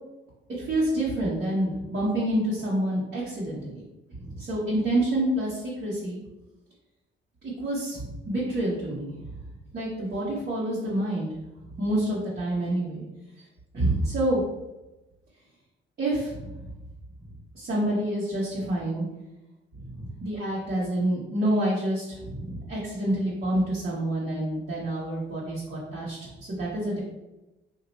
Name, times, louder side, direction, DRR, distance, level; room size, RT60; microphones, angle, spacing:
voice 1, 0.6-3.8 4.1-6.2 7.4-9.3 9.7-11.3 11.8-13.0 13.7-14.4 16.0-16.7 17.5-19.0 19.8-27.0, right 1 dB, 50° right, -8 dB, 1.5 m, -28 dB
2.9 x 2.8 x 4.4 m, 0.98 s
cardioid pair, 90°, 20 cm